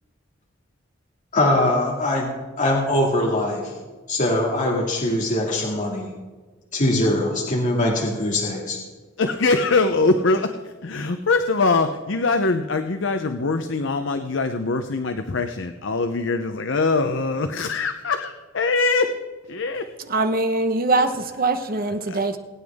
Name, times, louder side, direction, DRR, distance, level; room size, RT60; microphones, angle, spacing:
voice 1, 1.3-3.7 4.1-6.1 6.7-8.8, left 1 dB, 40° left, 2.2 m, -22 dB
voice 2, 9.2-19.1 19.5-19.9 22.0-22.2, left 3 dB, 65° left, 0.7 m, -23 dB
voice 3, 20.1-22.4, right 2 dB, 45° right, 1.1 m, -22 dB
21.5 x 9.5 x 3.6 m
head